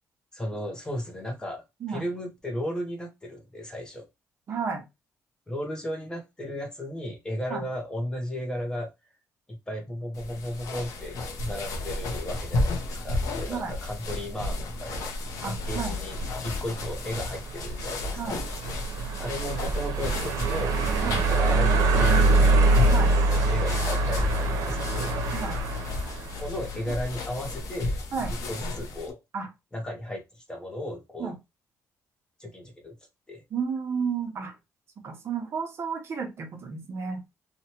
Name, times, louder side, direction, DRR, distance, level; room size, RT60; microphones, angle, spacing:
voice 1, 0.3-4.1 5.5-8.9 9.5-15.1 15.4-18.4 19.2-22.7 23.1-25.2 26.4-27.9 28.5-29.2 29.7-31.3 32.4-33.0 33.3-33.4, left 1 dB, 15° left, 0.7 m, -35 dB
voice 2, 4.5-4.9 7.5-7.6 13.5-13.7 15.4-16.0 18.2-18.4 21.0-21.2 22.9-23.1 25.3-25.6 28.1-28.3 29.3-29.5 31.2-31.3 33.5-34.5 35.0-37.2, right 6 dB, 45° right, 0.8 m, -32 dB
sound 1, 10.1-29.1, left 2 dB, 70° left, 0.8 m, -33 dB
sound 2, 15.4-27.5, right 3 dB, 90° right, 0.6 m, -25 dB
3.0 x 2.2 x 2.8 m
cardioid pair, 145°, 6 cm